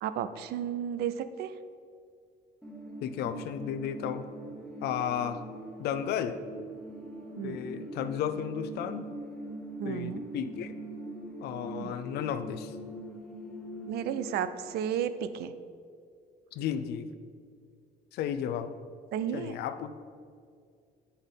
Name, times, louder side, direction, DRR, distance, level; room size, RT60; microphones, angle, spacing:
voice 1, 0.0-1.5 7.4-7.6 9.8-10.3 11.8-12.0 13.9-15.5 19.1-19.6, right 9 dB, 70° right, 12 dB, 0.4 m, -33 dB
sound 1, 2.6-14.5, right 1 dB, 5° left, 1.0 m, -42 dB
voice 2, 3.0-4.2 4.8-5.4 5.8-6.4 7.4-9.1 9.8-10.8 11.4-12.7 16.5-17.1 18.1-18.7 19.3-19.9, left 9 dB, 75° left, 11 dB, 0.5 m, -33 dB
8.2 x 5.4 x 3.9 m, 2.2 s
cardioid pair, 110°, 17 cm